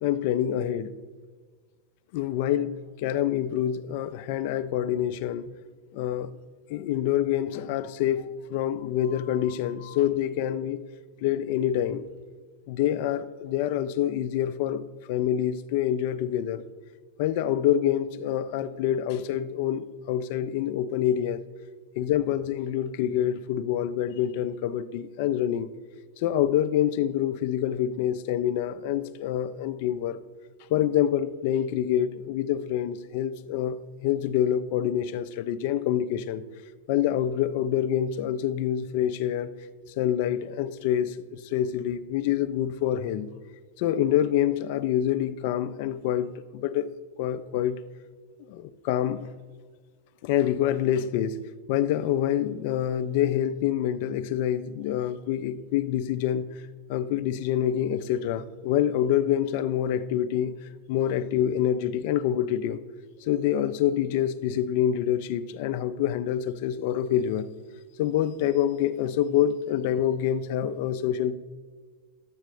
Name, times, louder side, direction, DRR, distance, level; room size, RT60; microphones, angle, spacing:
voice 1, 0.0-0.9 2.1-5.5 5.9-6.3 6.7-10.8 11.2-12.1 12.7-14.8 15.1-16.7 17.2-21.4 22.0-25.7 26.2-30.2 30.7-36.4 36.9-39.5 40.0-43.3 43.8-46.9 47.2-47.8 48.5-49.3 50.2-51.4 51.7-56.5 56.9-60.5 60.9-62.8 63.3-67.5 68.0-71.4, left 10 dB, 50° left, 0.4 m, -26 dB
11.0 x 8.1 x 3.2 m
figure-of-eight pair, 90°, 0 cm